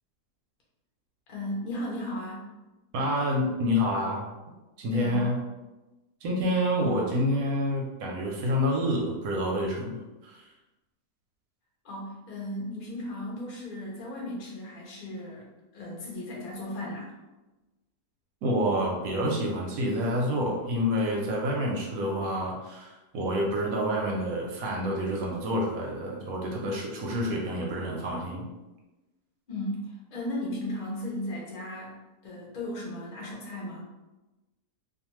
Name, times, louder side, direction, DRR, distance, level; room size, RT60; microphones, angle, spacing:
voice 1, 1.3-2.5 4.9-5.3 11.8-15.4 15.7-17.1 29.5-32.0 32.2-33.8, left 1 dB, 45° left, -3 dB, 0.6 m, -35 dB
voice 2, 2.9-4.2 4.8-5.4 6.2-10.0 10.2-10.4 18.4-28.4, equal, 70° right, -1 dB, 0.9 m, -28 dB
2.5 x 2.4 x 2.9 m, 1.1 s
omnidirectional pair, 1.7 m